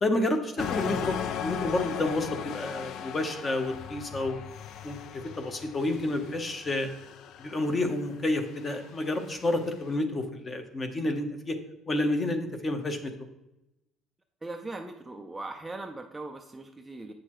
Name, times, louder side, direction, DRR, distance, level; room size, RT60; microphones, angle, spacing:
voice 1, 0.0-4.4 4.8-6.9 7.4-11.6 11.9-13.1, left 2 dB, 20° left, 6 dB, 0.8 m, -30 dB
sound 1, 0.6-9.8, left 9 dB, 55° left, 0.4 m, -38 dB
voice 2, 14.4-17.1, right 2 dB, 10° right, 4 dB, 0.4 m, -39 dB
8.6 x 6.5 x 3.0 m, 0.91 s
cardioid pair, 170°, 0 cm